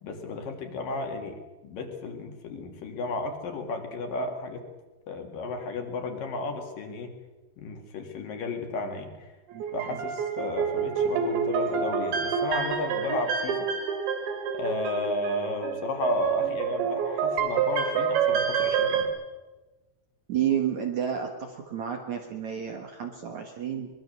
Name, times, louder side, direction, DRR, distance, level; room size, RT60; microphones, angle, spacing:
voice 1, 0.0-4.6 5.1-7.1 7.6-9.3 9.7-13.7 14.5-19.1, left 2 dB, 55° left, 4 dB, 3.4 m, -33 dB
sound 1, 9.5-19.1, right 7 dB, 80° right, 4.5 m, -28 dB
voice 2, 20.3-23.9, right 9 dB, 60° right, 3 dB, 2.2 m, -30 dB
23.5 x 22.0 x 6.8 m, 1.2 s
omnidirectional pair, 5.1 m